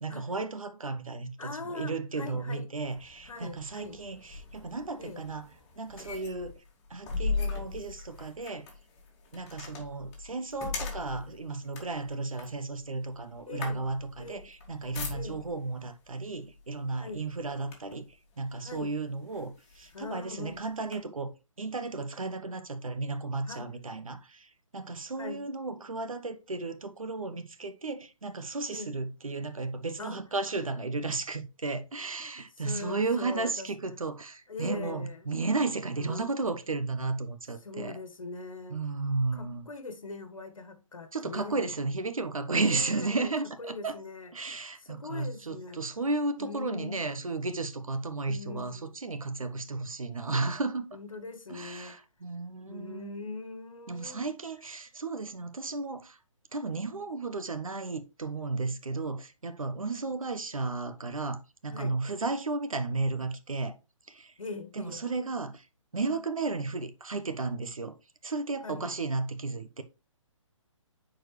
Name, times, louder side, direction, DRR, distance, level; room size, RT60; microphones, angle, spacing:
voice 1, 0.0-5.5 5.8-6.6 6.9-8.7 9.3-18.0 18.4-21.3 21.6-38.0 38.7-39.7 41.1-44.0 44.3-50.9 51.5-53.2 53.9-56.2 56.5-63.8 64.1-64.3 64.8-65.7 65.9-67.9 68.2-69.8, right 3 dB, 90° right, 1.1 m, -34 dB
voice 2, 1.4-2.7 3.2-4.0 5.0-5.2 13.4-13.9 14.2-14.5 15.1-15.4 17.0-17.2 18.6-18.9 19.9-20.6 23.4-23.7 25.2-25.5 28.7-29.0 30.0-30.2 32.6-33.7 34.5-35.3 36.0-36.3 37.6-38.8 39.3-41.6 42.5-43.3 43.6-44.3 44.8-45.8 46.4-47.0 48.3-48.9 50.9-52.0 52.7-54.2 61.7-62.0 64.4-65.0 68.6-68.9, left 3 dB, 80° left, 1.4 m, -41 dB
sound 1, 2.8-15.6 16.5-16.7 17.1-18.1 18.7-18.8 19.3-20.9, left 4 dB, 25° left, 2.2 m, -39 dB
9.1 x 4.6 x 3.2 m
hypercardioid pair, 145°, 17 cm